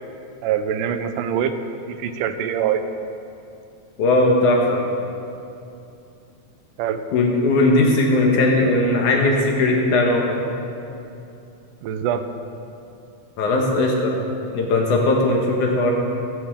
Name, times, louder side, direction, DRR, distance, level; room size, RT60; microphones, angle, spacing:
voice 1, 0.4-2.8 6.8-7.0 11.8-12.3, right 8 dB, 90° right, 9 dB, 2.3 m, -24 dB
voice 2, 4.0-4.8 7.1-10.4 13.4-14.2 14.5-15.9, left 2 dB, 75° left, 0 dB, 2.8 m, -18 dB
20.5 x 11.0 x 3.8 m, 2.7 s
omnidirectional pair, 3.6 m